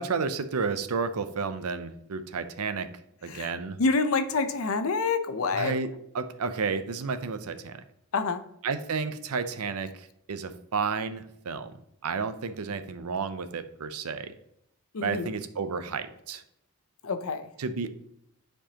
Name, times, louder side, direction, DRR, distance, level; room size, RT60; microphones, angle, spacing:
voice 1, 0.0-2.9 3.2-3.8 5.5-5.9 6.1-7.8 8.6-14.3 15.0-16.4 17.6-17.9, right 5 dB, 80° right, 11 dB, 0.6 m, -31 dB
voice 2, 3.8-5.7 8.1-8.4 14.9-15.3 17.0-17.5, left 4 dB, 65° left, 10 dB, 0.6 m, -27 dB
10.0 x 4.5 x 2.9 m, 0.76 s
head